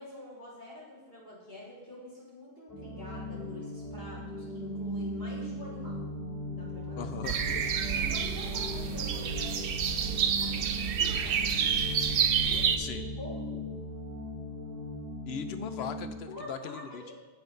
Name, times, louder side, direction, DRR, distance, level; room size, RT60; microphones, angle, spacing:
voice 1, 0.0-6.1 6.6-7.1 7.9-11.6 12.5-13.7 16.3-17.2, left 1 dB, 40° left, -8 dB, 3.5 m, -47 dB
sound 1, 2.7-16.1, equal, 10° right, 2.6 m, -38 dB
voice 2, 7.0-7.7 12.8-13.0 15.3-17.0, left 7 dB, 65° left, 9 dB, 0.8 m, -39 dB
sound 2, 7.2-12.8, right 7 dB, 60° right, 0.7 m, -29 dB
8.2 x 5.7 x 5.2 m, 1.2 s
omnidirectional pair, 1.2 m